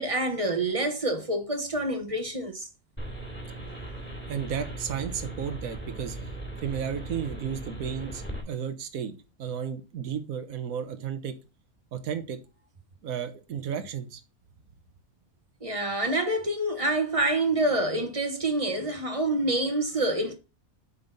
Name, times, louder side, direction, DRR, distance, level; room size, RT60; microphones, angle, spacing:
voice 1, 0.0-2.7 15.6-20.3, right 1 dB, 25° right, 1.2 m, -27 dB
sound 1, 3.0-8.4, right 2 dB, 5° left, 2.6 m, -38 dB
voice 2, 4.3-6.3 6.6-11.3 11.9-12.4 13.0-14.2, right 8 dB, 70° right, 1.5 m, -33 dB
8.6 x 5.7 x 4.1 m
omnidirectional pair, 1.5 m